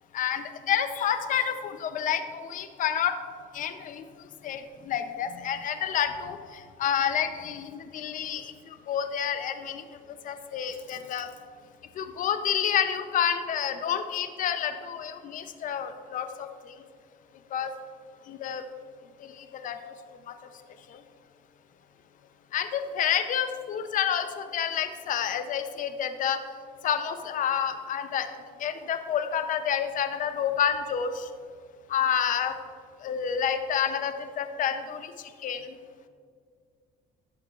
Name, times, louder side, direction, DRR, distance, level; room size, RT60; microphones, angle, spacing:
voice 1, 0.1-3.1 3.5-4.0 4.5-9.5 10.2-11.3 12.0-16.8 17.5-17.7 18.3-18.6 19.2-19.8 20.9-21.0 22.5-26.4 26.8-28.3 28.6-31.3 31.9-32.5 33.0-35.1 35.4-35.7, left 8 dB, 50° left, 9 dB, 0.6 m, -29 dB
12.5 x 8.7 x 2.4 m, 2.1 s
cardioid pair, 110°, 17 cm